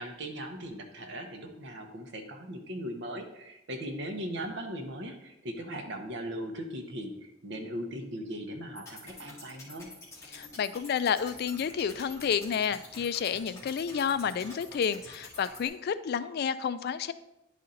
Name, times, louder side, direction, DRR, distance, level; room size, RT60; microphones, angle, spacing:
voice 1, 0.0-9.9, equal, 65° right, 4 dB, 1.0 m, -39 dB
sound 1, 8.8-15.7, left 2 dB, 15° left, 1.7 m, -48 dB
voice 2, 10.3-17.1, left 7 dB, 55° left, 13 dB, 0.3 m, -30 dB
10.0 x 4.2 x 3.9 m, 0.89 s
head